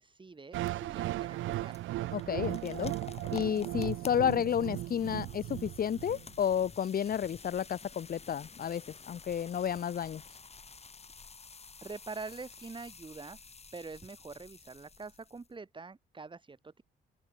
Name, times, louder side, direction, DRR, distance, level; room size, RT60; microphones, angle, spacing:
voice 1, 0.0-1.8 11.8-13.4 13.7-16.8, right 4 dB, 25° right, 2.4 m, -45 dB
sound 1, 0.5-6.5, right 16 dB, 80° right, 0.7 m, -37 dB
sound 2, 0.6-15.5, left 4 dB, 30° left, 3.5 m, -52 dB
voice 2, 2.1-2.9 3.3-10.2, left 9 dB, 50° left, 1.0 m, -31 dB
open air
cardioid pair, 90°, 20 cm